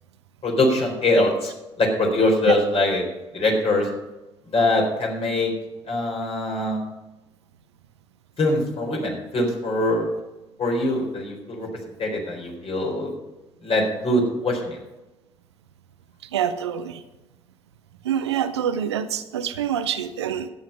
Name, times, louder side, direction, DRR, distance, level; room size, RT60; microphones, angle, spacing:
voice 1, 0.4-1.5 1.8-3.1 3.3-3.9 4.4-5.5 5.9-6.8 8.4-10.1 10.6-11.7 12.0-13.1 13.6-14.8, left 2 dB, 45° left, 0 dB, 3.9 m, -22 dB
voice 2, 16.3-17.0 18.0-20.5, right 9 dB, 80° right, 12 dB, 0.5 m, -26 dB
11.5 x 9.0 x 5.4 m, 1.0 s
figure-of-eight pair, 45°, 14 cm